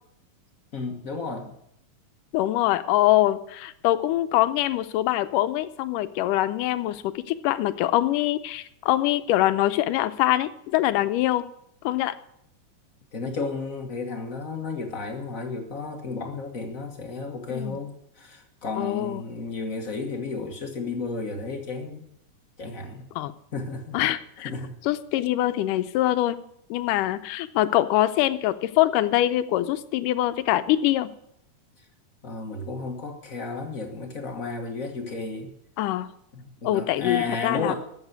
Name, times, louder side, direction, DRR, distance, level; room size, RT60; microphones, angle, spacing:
voice 1, 0.7-1.5 13.1-22.1 22.6-23.1 23.5-24.0 24.4-24.7 31.8-31.9 32.2-35.5 36.3-37.7, left 4 dB, 50° left, 3 dB, 1.0 m, -33 dB
voice 2, 2.3-11.5 11.8-12.2 17.5-17.8 18.8-19.2 23.2-23.3 23.9-24.5 24.9-26.4 26.7-31.1 35.8-36.1 36.6-37.7, left 14 dB, 85° left, 12 dB, 2.2 m, -24 dB
13.0 x 7.4 x 8.2 m, 0.73 s
omnidirectional pair, 3.7 m